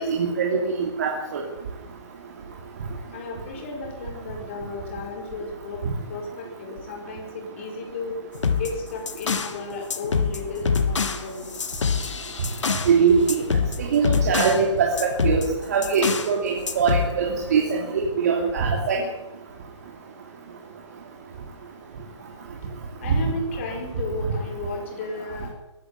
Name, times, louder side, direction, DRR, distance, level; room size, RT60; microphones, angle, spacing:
voice 1, 0.1-1.4 12.9-13.3 13.8-19.0, right 5 dB, 35° right, 0 dB, 3.0 m, -22 dB
voice 2, 3.1-5.8 6.1-8.2 8.6-11.5 23.0-25.5, left 3 dB, 25° left, 1 dB, 5.1 m, -34 dB
sound 1, 8.3-9.6 9.9-12.9 13.3-14.6 15.0-16.3 16.7-17.1, left 5 dB, 80° left, 2.8 m, -25 dB
22.5 x 11.5 x 9.8 m, 0.96 s
hypercardioid pair, 180°, 15 cm